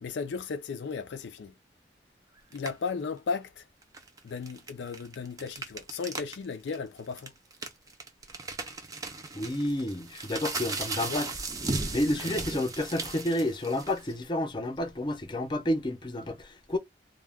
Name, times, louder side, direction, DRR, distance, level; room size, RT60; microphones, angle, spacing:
voice 1, 0.0-1.5 2.5-3.7 4.2-7.3 11.0-11.2 12.0-12.3, left 5 dB, 75° left, 0.4 m, -35 dB
sound 1, 2.5-2.9 3.8-6.4 6.7-6.8 7.2-14.1, right 3 dB, 20° right, 0.5 m, -36 dB
voice 2, 9.3-11.3 11.9-16.8, left 1 dB, 25° left, 0.5 m, -30 dB
2.2 x 2.2 x 3.4 m
head